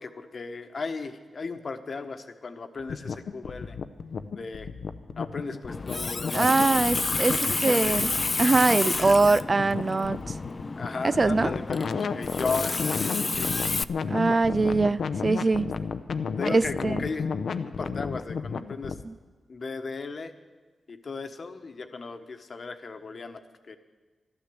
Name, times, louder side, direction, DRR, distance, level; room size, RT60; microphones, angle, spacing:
voice 1, 0.0-3.8 4.3-4.7 5.2-6.9 7.4-8.1 10.8-13.5 15.4-15.5 16.4-17.3 17.6-19.0 19.5-20.3 20.9-23.8, left 4 dB, 55° left, 8 dB, 1.2 m, -36 dB
sound 1, 2.8-19.0, left 5 dB, 75° left, 0.6 m, -33 dB
Water tap faucet, 5.7-13.8, left 3 dB, 40° left, 0.4 m, -30 dB
voice 2, 6.3-8.1 8.4-10.3 11.0-11.5 14.1-15.7 16.5-17.0 19.0-19.1, right 3 dB, 40° right, 16 dB, 0.4 m, -23 dB
12.0 x 12.0 x 7.8 m, 1.3 s
cardioid pair, 60°, 0 cm